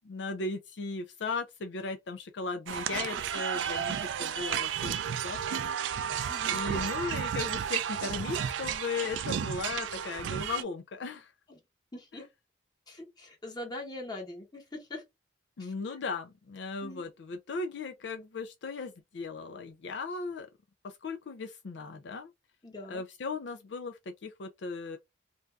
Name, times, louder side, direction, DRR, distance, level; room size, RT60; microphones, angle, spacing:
voice 1, 0.0-5.6 6.5-11.3 15.6-20.5 20.8-22.3 22.9-25.0, left 4 dB, 65° left, 0.4 m, -37 dB
sound 1, 2.7-10.6, right 8 dB, 80° right, 0.3 m, -32 dB
voice 2, 6.3-6.6 11.5-11.6 11.9-12.3 12.9-14.6 14.9-15.0 15.6-15.7 16.8-17.0 22.6-23.0, left 1 dB, 20° left, 1.1 m, -42 dB
2.6 x 2.3 x 3.2 m
head